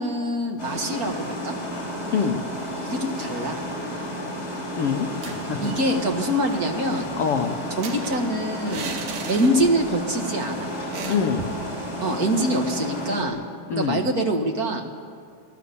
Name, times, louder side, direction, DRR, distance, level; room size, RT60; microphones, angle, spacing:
voice 1, 0.0-1.5 2.8-3.6 5.6-7.1 7.8-8.9 9.3-10.8 12.0-13.4 13.7-14.8, right 1 dB, 40° right, 3 dB, 1.5 m, -24 dB
sound 1, 0.6-13.2, equal, 20° left, 5.4 m, -32 dB
voice 2, 4.8-5.7 7.2-7.6 11.1-11.5 13.7-14.0, left 6 dB, 85° left, 4 dB, 1.3 m, -25 dB
sound 2, 5.1-5.9 6.2-6.3 6.6-10.0 10.3-10.4 10.9-11.7, right 5 dB, 70° right, 3.3 m, -37 dB
28.5 x 19.0 x 7.0 m, 2.1 s
omnidirectional pair, 4.2 m